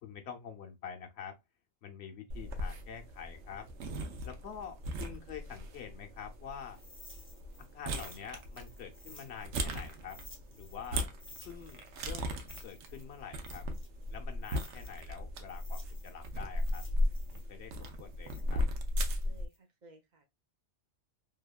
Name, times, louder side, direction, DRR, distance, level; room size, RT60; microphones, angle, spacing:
voice 1, 0.0-1.4 1.8-3.7 4.2-6.8 7.7-10.2 10.5-11.1 11.4-12.4 12.6-13.7 14.1-16.9 17.3-17.7 18.0-18.6, left 7 dB, 70° left, 0.9 m, -46 dB
sound 1, 2.3-19.5, left 1 dB, 75° right, 0.9 m, -37 dB
sound 2, 6.7-10.9 11.2-15.1 15.5-19.6, left 1 dB, 15° left, 0.5 m, -55 dB
voice 2, 19.1-20.2, right 1 dB, 50° right, 0.6 m, -58 dB
2.8 x 2.2 x 2.3 m
omnidirectional pair, 1.2 m